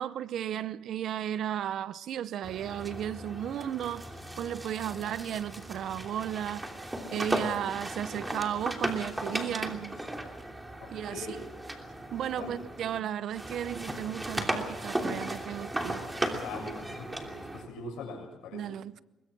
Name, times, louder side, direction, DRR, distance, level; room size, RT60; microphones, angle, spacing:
voice 1, 0.0-4.1 4.4-6.7 7.1-9.9 10.9-11.4 12.1-16.0 18.5-19.0, right 10 dB, 70° right, 0.7 m, -34 dB
sound 1, 2.4-13.0 13.3-17.7, right 1 dB, 10° right, 3.0 m, -36 dB
voice 2, 10.8-11.5 12.4-12.6 16.3-18.6, left 3 dB, 90° left, 6.6 m, -42 dB
23.0 x 21.5 x 6.1 m
cardioid pair, 90°, 0 cm